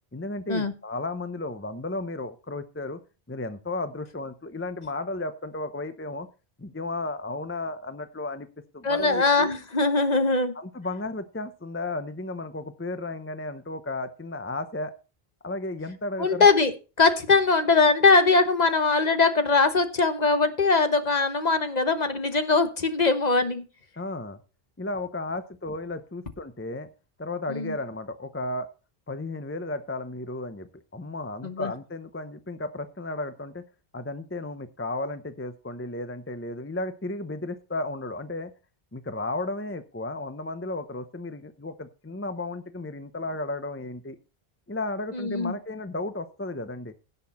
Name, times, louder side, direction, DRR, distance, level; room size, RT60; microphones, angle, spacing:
voice 1, 0.1-3.0 3.3-6.3 6.6-8.5 8.7-9.5 10.5-14.9 15.4-16.5 24.0-24.4 24.8-26.9 27.2-28.7 29.1-33.6 33.9-38.5 38.9-44.2 44.7-46.9, left 2 dB, 15° left, 11 dB, 0.7 m, -34 dB
voice 2, 8.8-10.5 16.2-16.7 17.0-23.6 27.5-27.7 31.4-31.7 45.1-45.5, left 4 dB, 45° left, 9 dB, 1.2 m, -21 dB
16.5 x 6.7 x 4.2 m, 0.33 s
omnidirectional pair, 1.0 m